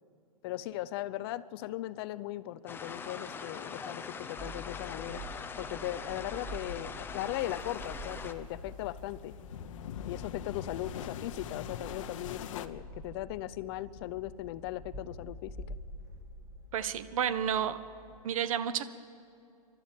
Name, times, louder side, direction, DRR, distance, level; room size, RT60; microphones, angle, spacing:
voice 1, 0.4-5.2 5.6-9.3 10.1-15.5, left 15 dB, 40° left, 14 dB, 0.7 m, -38 dB
sound 1, 2.7-8.3, left 5 dB, 10° left, 0.9 m, -42 dB
sound 2, 4.4-18.2, equal, 20° right, 3.8 m, -47 dB
sound 3, 7.4-12.7, left 9 dB, 55° left, 1.1 m, -43 dB
voice 2, 16.7-17.8 18.2-18.8, right 9 dB, 60° right, 13 dB, 1.2 m, -30 dB
28.0 x 12.5 x 9.0 m, 2.6 s
hypercardioid pair, 135°, 19 cm